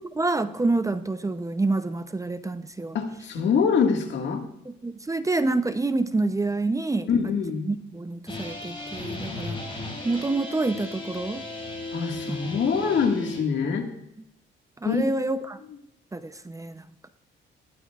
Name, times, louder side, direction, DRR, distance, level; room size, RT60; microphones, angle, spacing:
voice 1, 0.1-3.0 4.6-7.1 7.6-9.6 10.0-11.4 12.3-12.4 14.8-15.6 16.1-17.1, right 2 dB, 15° right, 10 dB, 0.6 m, -27 dB
voice 2, 2.9-4.4 7.1-7.7 11.9-13.9 14.9-15.0, left 6 dB, 65° left, 4 dB, 1.8 m, -24 dB
sound 1, 8.3-13.4, left 2 dB, 25° left, 5.8 m, -35 dB
19.5 x 13.0 x 2.4 m, 0.78 s
cardioid pair, 90°, 20 cm